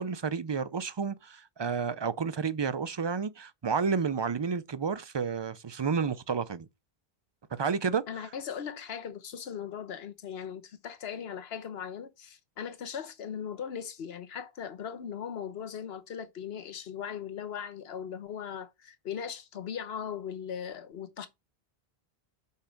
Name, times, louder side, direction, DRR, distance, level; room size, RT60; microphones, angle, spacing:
voice 1, 0.0-6.7 7.5-8.3, right 5 dB, 40° right, 0.4 m, -31 dB
voice 2, 8.1-21.3, left 8 dB, 80° left, 1.1 m, -39 dB
5.6 x 4.3 x 5.1 m
omnidirectional pair, 1.0 m